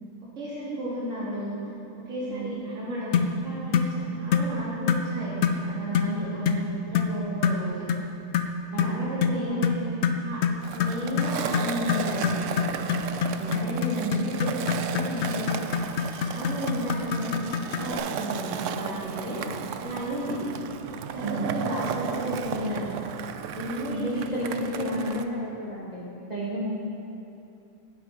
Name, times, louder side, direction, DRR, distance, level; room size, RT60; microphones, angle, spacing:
voice 1, 0.4-1.6 1.9-5.3 5.6-7.8 8.8-9.9 10.2-10.4 10.7-12.7 13.5-15.5 16.0-17.3 17.8-19.4 19.8-20.4 21.1-22.9 23.5-24.3 24.6-25.2, equal, 50° right, -10 dB, 3.8 m, -33 dB
sound 1, 3.1-3.3 3.7-3.9 4.3-4.5 4.9-5.1 5.4-5.6 5.9-6.1 6.4-6.6 6.9-7.1 7.4-7.6 7.9-8.1 8.3-17.9, left 6 dB, 60° left, 0.9 m, -26 dB
voice 2, 8.7-9.1 9.5-9.6 13.4-13.7 14.0-14.3 18.6-19.7 21.2-21.5 23.9-26.8, right 1 dB, 25° right, -7 dB, 1.8 m, -33 dB
Skateboard, 10.6-25.2, right 8 dB, 65° right, 0.8 m, -34 dB
15.5 x 9.0 x 4.7 m, 2.8 s
omnidirectional pair, 1.7 m